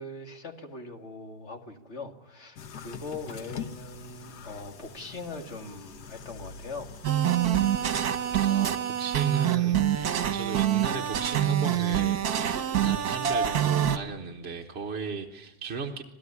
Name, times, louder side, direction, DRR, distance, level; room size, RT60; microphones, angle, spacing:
voice 1, 0.0-7.0, left 3 dB, 45° left, 4 dB, 2.5 m, -41 dB
sound 1, 2.6-8.5, left 7 dB, 85° left, 1.6 m, -44 dB
sound 2, 7.0-14.0, right 10 dB, 70° right, 1.6 m, -25 dB
voice 2, 8.3-16.0, right 5 dB, 45° right, 1 dB, 1.4 m, -36 dB
27.0 x 18.0 x 9.8 m, 0.99 s
omnidirectional pair, 1.7 m